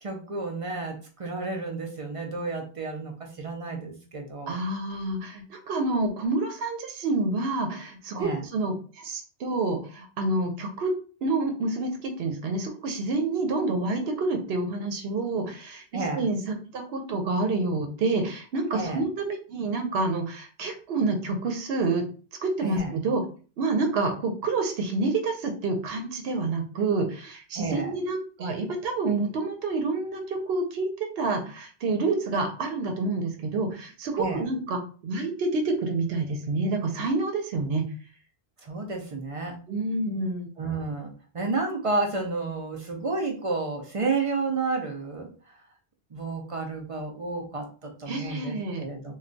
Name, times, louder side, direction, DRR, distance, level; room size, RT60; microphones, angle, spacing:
voice 1, 0.0-4.6 8.1-8.4 15.9-16.3 18.7-19.0 22.6-23.0 27.5-27.9 34.2-34.5 38.6-39.5 40.6-45.3 46.1-49.1, right 3 dB, 45° right, 1 dB, 0.5 m, -31 dB
voice 2, 4.5-10.9 11.2-22.0 22.4-23.2 23.6-30.9 31.2-37.9 39.7-40.5 48.1-48.8, right 3 dB, 75° right, 4 dB, 0.9 m, -28 dB
2.3 x 2.2 x 3.8 m, 0.38 s
omnidirectional pair, 1.0 m